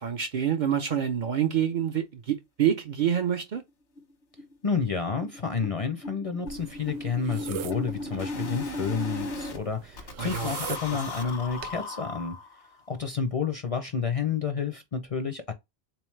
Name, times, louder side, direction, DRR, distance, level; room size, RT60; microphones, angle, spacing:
voice 1, 0.0-3.6 10.2-10.5 10.8-11.3, right 9 dB, 55° right, 0.6 m, -27 dB
sound 1, 2.7-2.8 3.1-3.2 3.6-3.7 4.0-4.1 4.4-9.6 10.0-12.8, left 2 dB, 85° left, 1.3 m, -37 dB
voice 2, 4.6-12.4 12.9-15.5, left 6 dB, 45° left, 0.5 m, -30 dB
sound 2, 6.5-11.8, right 9 dB, 90° right, 0.9 m, -41 dB
3.7 x 3.0 x 3.1 m
omnidirectional pair, 1.1 m